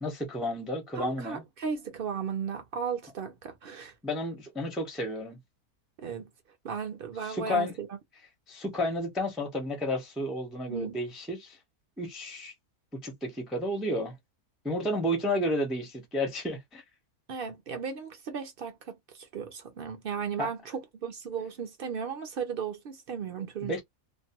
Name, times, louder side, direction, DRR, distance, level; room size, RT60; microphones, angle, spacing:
voice 1, 0.0-1.4 4.0-5.4 7.2-7.7 8.5-11.6 12.0-12.5 12.9-14.1 14.6-16.8 20.4-20.5 23.6-23.8, left 1 dB, ahead, 0.3 m, -31 dB
voice 2, 0.9-3.9 6.0-6.3 6.6-7.9 10.7-11.0 17.3-23.8, right 6 dB, 60° right, 0.6 m, -35 dB
2.5 x 2.1 x 2.8 m
omnidirectional pair, 1.6 m